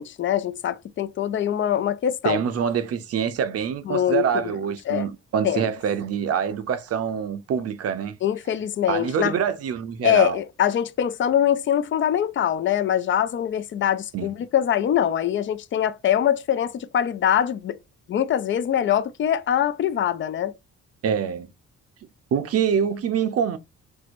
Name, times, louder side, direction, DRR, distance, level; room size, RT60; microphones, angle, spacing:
voice 1, 0.0-2.4 3.9-4.5 4.9-5.1 5.4-5.7 8.2-9.4 10.0-17.8 18.1-20.5, left 10 dB, 40° left, 0.4 m, -23 dB
voice 2, 2.2-8.2 8.9-10.4 14.1-14.3 21.0-21.5 22.3-23.6, right 8 dB, 55° right, 0.6 m, -25 dB
4.4 x 2.1 x 2.5 m
cardioid pair, 90°, 30 cm